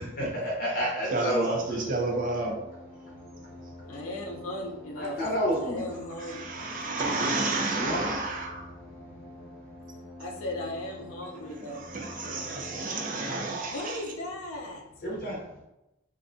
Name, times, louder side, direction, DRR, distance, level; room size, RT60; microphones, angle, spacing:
voice 1, 0.0-1.8 5.0-5.8 7.0-7.1 7.8-8.1 15.0-15.4, equal, 45° left, -4 dB, 0.7 m, -30 dB
voice 2, 1.1-2.6 6.2-8.7 11.6-14.0, right 2 dB, 40° right, 1 dB, 0.5 m, -31 dB
sound 1, 1.5-12.8, left 1 dB, 70° right, 0.9 m, -47 dB
voice 3, 3.9-5.2 5.6-6.4 10.2-11.9 12.2-12.4 13.7-14.8, left 1 dB, 80° left, 1 dB, 0.5 m, -37 dB
2.5 x 2.1 x 2.5 m, 0.91 s
head